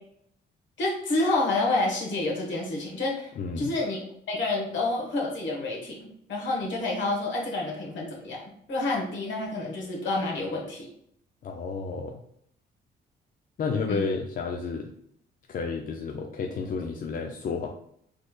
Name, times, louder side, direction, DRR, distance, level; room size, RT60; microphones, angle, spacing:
voice 1, 0.8-4.0 4.3-6.0 6.3-8.4 8.7-10.9 13.9-14.0, left 2 dB, 70° left, -1 dB, 1.4 m, -28 dB
voice 2, 3.4-3.7 11.4-12.2 13.6-14.9 15.5-17.7, left 4 dB, 45° left, 3 dB, 0.4 m, -31 dB
4.1 x 3.2 x 2.3 m, 0.70 s
cardioid pair, 90°, 20 cm